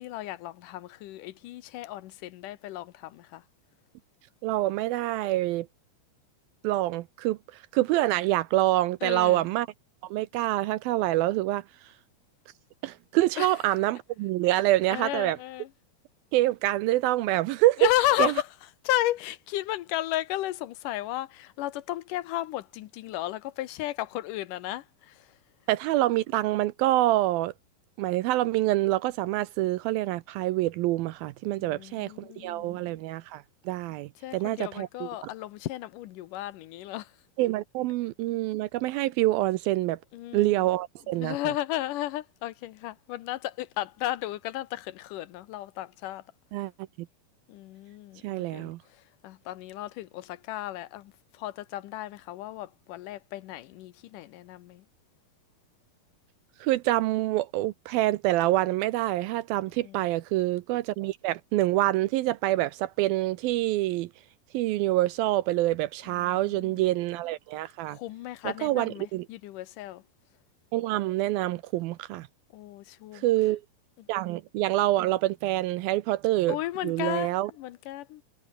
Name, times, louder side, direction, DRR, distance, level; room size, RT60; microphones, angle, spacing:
voice 1, 0.0-3.4 9.0-9.5 13.4-13.6 14.9-15.7 17.8-18.5 18.8-25.3 31.6-33.0 34.2-37.1 40.1-40.7 41.2-46.2 47.5-54.8 59.8-60.0 66.1-66.8 67.9-70.0 72.5-73.3 74.0-74.1 76.5-78.2, left 15 dB, 75° left, 2.1 m, -34 dB
voice 2, 4.4-5.7 6.6-7.4 7.7-9.7 10.1-11.6 12.8-15.4 16.3-17.9 18.2-18.3 25.7-27.5 28.0-35.3 37.4-40.0 40.3-41.4 46.5-46.7 48.2-48.8 56.6-64.1 64.5-68.0 68.4-69.3 70.7-72.3 73.1-73.6 74.1-76.6 76.8-77.5, right 16 dB, 80° right, 2.5 m, -26 dB
omnidirectional pair, 4.3 m